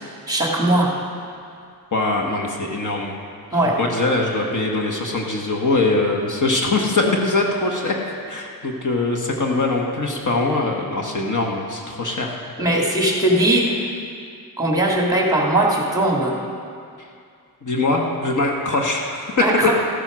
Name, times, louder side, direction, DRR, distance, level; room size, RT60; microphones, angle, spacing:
voice 1, 0.3-0.9 3.5-3.8 12.6-13.8 14.6-16.4 19.4-19.7, right 1 dB, 10° right, -1 dB, 2.2 m, -19 dB
voice 2, 1.9-3.1 3.5-12.4 17.6-19.4, left 2 dB, 50° left, 1 dB, 1.4 m, -22 dB
14.5 x 9.0 x 6.2 m, 2.3 s
wide cardioid pair, 105°, 38 cm